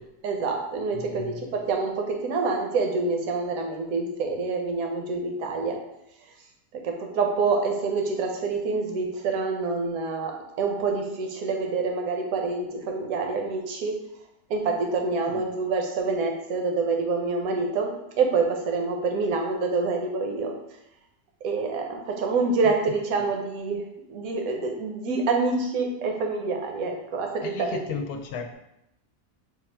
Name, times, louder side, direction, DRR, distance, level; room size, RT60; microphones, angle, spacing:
voice 1, 0.2-5.8 6.8-14.0 14.5-20.5 21.4-23.8 24.1-28.0, right 4 dB, 70° right, 3 dB, 1.1 m, -27 dB
voice 2, 0.9-1.5 15.2-15.4 27.4-28.5, left 6 dB, 85° left, 5 dB, 1.1 m, -35 dB
4.2 x 2.4 x 4.4 m, 0.85 s
omnidirectional pair, 1.6 m